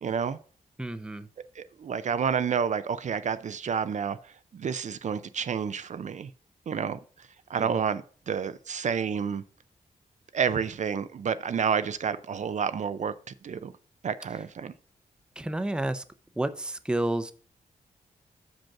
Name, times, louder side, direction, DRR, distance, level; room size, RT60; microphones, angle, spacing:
voice 1, 0.0-0.4 1.6-4.2 4.5-6.3 6.7-7.0 7.5-9.4 10.3-13.7 14.0-14.7, right 7 dB, 55° right, 0.4 m, -29 dB
voice 2, 0.8-1.3 7.6-7.8 15.4-16.0 16.4-17.3, right 1 dB, 5° right, 0.5 m, -30 dB
6.0 x 5.2 x 5.7 m
cardioid pair, 90°, 15 cm